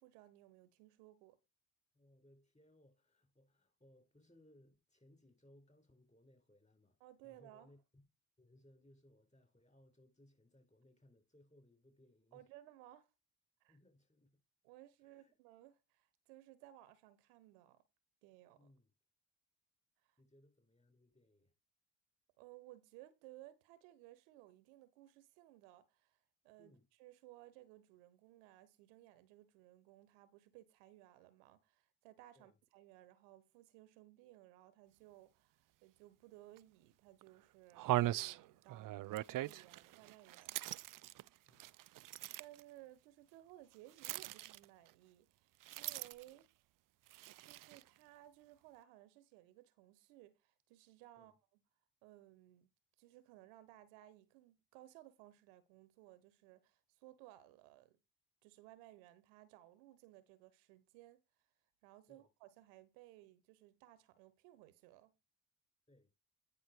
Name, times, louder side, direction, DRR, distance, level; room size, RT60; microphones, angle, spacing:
voice 1, 0.0-1.4 7.0-7.7 12.3-13.1 13.6-13.8 14.6-17.8 18.2-18.7 20.0-20.2 22.4-40.6 42.4-46.5 47.4-51.3 52.0-52.7 53.0-58.0 58.4-61.2 61.8-65.1, right 15 dB, 85° right, 1.1 m, -60 dB
voice 2, 1.9-8.1 8.4-12.5 13.7-14.4 15.0-15.3 18.6-18.9 20.2-21.5 26.6-26.9 32.3-32.6 41.5-41.8 51.2-51.4 62.1-62.3 65.9-66.1, left 1 dB, 15° left, 4.6 m, -67 dB
sound 1, 36.6-36.7 37.2-37.3 37.8-42.6 44.0-44.9 45.6-46.4 47.1-47.9, right 16 dB, 50° right, 0.5 m, -40 dB
10.0 x 5.6 x 4.5 m
hypercardioid pair, 55°, 44 cm